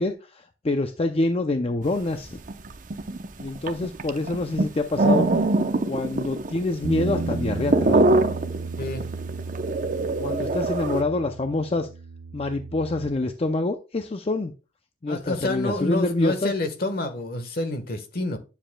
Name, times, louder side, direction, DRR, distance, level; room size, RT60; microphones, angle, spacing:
voice 1, 0.0-2.4 3.4-5.4 5.8-8.0 10.2-11.9 12.3-14.5 15.0-16.5, left 2 dB, 35° left, 0.5 m, -26 dB
sound 1, 2.0-2.1 2.3-11.0, right 2 dB, 50° right, 0.7 m, -23 dB
Bass guitar, 6.8-13.1, right 3 dB, 80° right, 0.8 m, -34 dB
voice 2, 15.1-18.4, left 2 dB, 60° left, 1.3 m, -28 dB
10.0 x 7.0 x 2.2 m
head